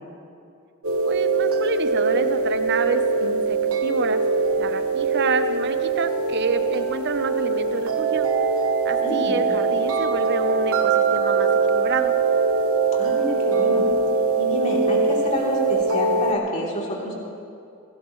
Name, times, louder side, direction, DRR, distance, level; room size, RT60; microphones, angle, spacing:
sound 1, 0.8-16.3, right 4 dB, 70° right, 1.4 m, -22 dB
voice 1, 1.0-4.2 4.6-8.3 8.8-12.1, right 4 dB, 50° right, 9 dB, 0.8 m, -29 dB
voice 2, 9.0-9.4 12.9-17.1, equal, 35° left, -4 dB, 3.3 m, -29 dB
22.0 x 17.5 x 3.2 m, 2.5 s
head